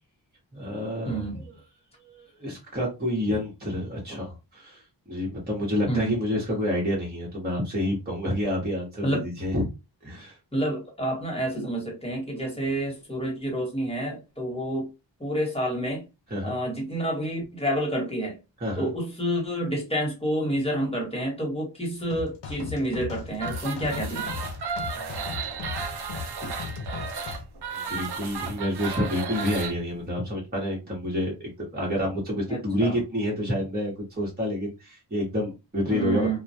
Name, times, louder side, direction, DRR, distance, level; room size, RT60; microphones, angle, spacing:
voice 1, 0.5-1.5 2.0-9.7 10.0-10.4 16.3-16.6 18.6-18.9 25.0-25.6 27.7-36.4, left 1 dB, 20° right, 0.9 m, -29 dB
voice 2, 1.0-1.4 5.9-6.2 9.0-9.2 10.5-14.9 15.2-16.0 16.4-18.3 18.8-24.3 26.4-26.5 32.5-32.9 35.9-36.4, right 1 dB, 15° left, 1.1 m, -29 dB
sound 1, 22.1-27.4, left 4 dB, 80° left, 0.6 m, -37 dB
sound 2, 23.3-29.7, right 5 dB, 65° right, 0.6 m, -34 dB
2.2 x 2.1 x 2.6 m
wide cardioid pair, 70°, 43 cm